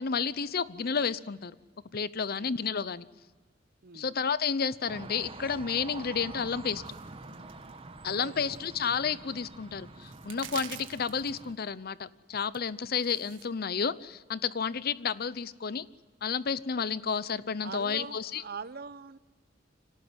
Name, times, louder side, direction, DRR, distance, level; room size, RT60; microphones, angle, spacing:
voice 1, 0.0-1.5 1.9-3.1 3.9-6.8 8.0-15.8 16.2-18.4, left 6 dB, 55° left, 17 dB, 0.7 m, -31 dB
voice 2, 3.8-4.1 8.2-8.6 17.6-19.2, right 5 dB, 55° right, 14 dB, 0.9 m, -42 dB
sound 1, 4.9-11.5, right 3 dB, 30° right, 1.3 m, -46 dB
sound 2, 6.8-7.8 8.1-8.2 8.5-8.6 9.7-9.8 10.0-11.4 12.5-13.4, right 10 dB, 90° right, 2.0 m, -46 dB
25.0 x 18.0 x 9.6 m, 1.4 s
head